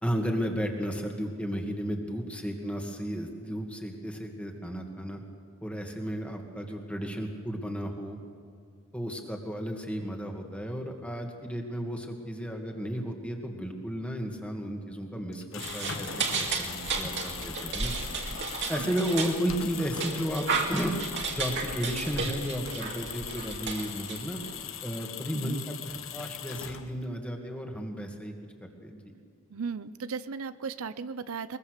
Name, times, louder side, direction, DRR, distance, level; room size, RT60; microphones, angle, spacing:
voice 1, 0.0-5.2 5.6-8.2 8.9-17.9 18.7-21.0 21.3-24.4 24.8-28.3 28.6-29.0, equal, 5° left, 2 dB, 2.2 m, -33 dB
sound 1, 15.3-27.2, left 8 dB, 60° left, 1.2 m, -40 dB
sound 2, 15.6-24.6, right 4 dB, 55° right, 2.6 m, -34 dB
voice 2, 29.5-31.6, right 5 dB, 75° right, 14 dB, 0.6 m, -36 dB
22.0 x 21.5 x 6.7 m, 2.2 s
head